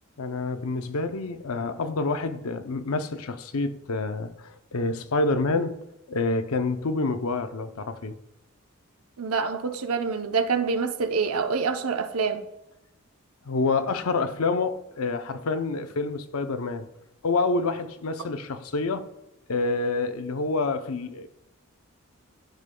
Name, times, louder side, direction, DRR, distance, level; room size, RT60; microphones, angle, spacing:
voice 1, 0.2-5.8 6.1-8.2 13.5-16.9 17.2-19.1 19.5-21.3, left 3 dB, 80° left, 0.6 m, -27 dB
voice 2, 9.2-12.5, right 5 dB, 85° right, 0.7 m, -26 dB
11.5 x 5.3 x 2.2 m
head